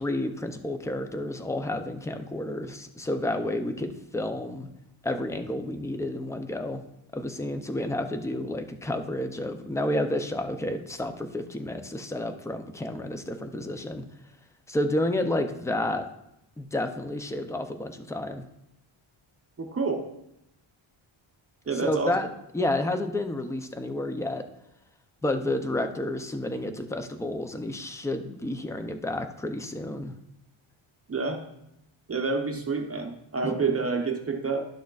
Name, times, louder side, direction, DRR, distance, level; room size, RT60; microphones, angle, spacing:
voice 1, 0.0-4.7 5.0-6.8 7.1-14.0 14.7-16.1 16.6-18.5 21.8-22.3 22.5-24.5 25.2-30.1 33.4-33.5, left 1 dB, 5° left, 7 dB, 0.3 m, -30 dB
voice 2, 19.6-20.1 21.7-22.1 31.1-31.4 32.1-34.6, right 4 dB, 30° right, 3 dB, 0.7 m, -28 dB
11.5 x 6.3 x 2.3 m, 0.83 s
wide cardioid pair, 155°, 49 cm